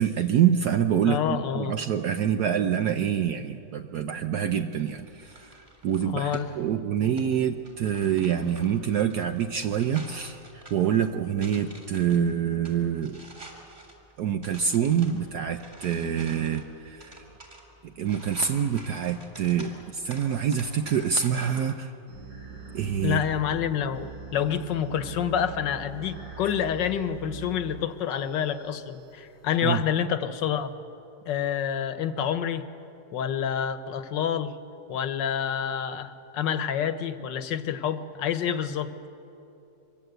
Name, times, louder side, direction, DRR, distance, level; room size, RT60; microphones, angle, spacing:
voice 1, 0.0-13.2 14.2-17.2 18.0-21.9 22.7-23.2 29.6-29.8, right 8 dB, 65° right, 7 dB, 1.2 m, -26 dB
voice 2, 1.0-1.7 6.0-6.5 23.0-30.7 31.3-32.7 33.1-34.5 34.9-38.9, left 8 dB, 75° left, 11 dB, 1.7 m, -28 dB
sound 1, 4.7-21.7, right 1 dB, 25° right, 3.9 m, -49 dB
sound 2, 22.1-29.7, right 4 dB, 85° right, 5.5 m, -43 dB
25.5 x 23.0 x 8.0 m, 3.0 s
omnidirectional pair, 1.9 m